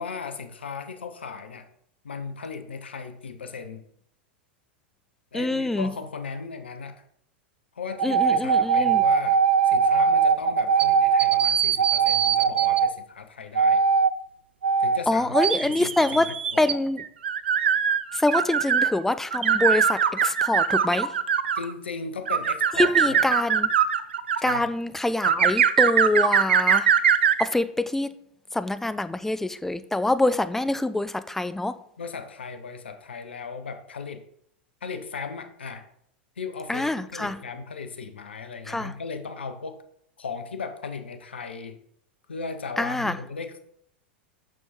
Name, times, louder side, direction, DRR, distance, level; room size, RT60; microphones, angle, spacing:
voice 1, 0.0-1.7 2.0-3.8 5.3-7.0 7.7-13.8 14.8-16.7 21.5-23.2 24.4-24.7 32.0-34.2 34.8-35.9 36.4-39.8 40.2-41.8 42.3-43.6, left 5 dB, 80° left, 9 dB, 1.0 m, -37 dB
voice 2, 5.3-5.9 8.0-9.0 15.1-16.2 16.6-17.0 18.1-21.1 22.8-23.7 24.4-26.9 27.4-28.1 28.5-31.8 36.7-37.4 38.7-38.9 42.8-43.2, left 2 dB, 5° left, 13 dB, 0.5 m, -25 dB
sound 1, 7.9-12.9 13.6-14.1 14.6-15.0 15.3-18.9 19.3-21.7 22.3-24.6 25.2-27.5, right 7 dB, 75° right, 0.6 m, -21 dB
8.6 x 6.3 x 4.4 m, 0.69 s
figure-of-eight pair, 90°, 6 cm